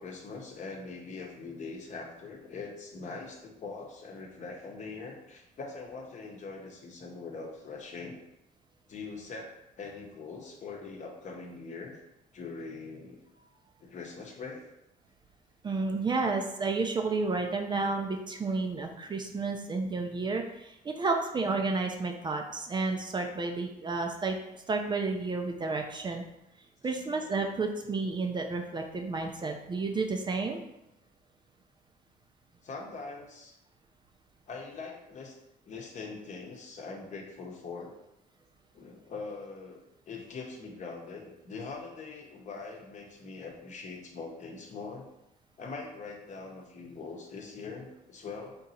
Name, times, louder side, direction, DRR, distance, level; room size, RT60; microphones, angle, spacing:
voice 1, 0.0-8.2 8.9-12.0 12.3-13.2 13.8-14.6 32.6-33.6 34.5-35.4 35.6-37.9 38.7-39.8 40.1-45.1 45.6-48.6, left 4 dB, 45° left, 1 dB, 0.9 m, -42 dB
voice 2, 15.6-24.4 24.7-26.2 26.8-30.7, right 3 dB, 25° right, 3 dB, 0.5 m, -31 dB
3.8 x 2.8 x 4.1 m, 0.88 s
cardioid pair, 110°, 17 cm